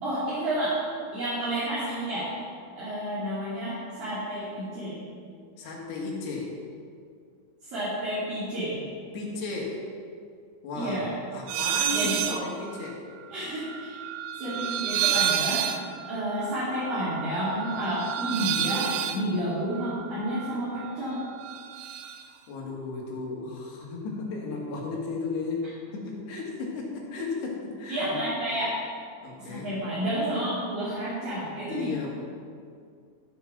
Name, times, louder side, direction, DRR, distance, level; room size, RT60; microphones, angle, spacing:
voice 1, 0.0-0.8 1.1-2.3 2.7-5.0 7.6-8.8 10.7-11.2 11.9-12.5 13.3-14.0 14.4-15.7 16.1-21.2 27.9-28.7 29.4-31.9, right 1 dB, 55° right, -11 dB, 4.1 m, -30 dB
voice 2, 5.6-6.6 9.1-9.8 10.6-11.0 11.3-13.0 22.3-28.2 29.2-29.7 31.7-32.4, left 3 dB, 70° left, -2 dB, 3.5 m, -34 dB
sound 1, 11.5-12.4 12.7-20.9 21.2-22.2, right 10 dB, 80° right, 2.5 m, -30 dB
14.0 x 6.7 x 6.0 m, 2.2 s
omnidirectional pair, 5.3 m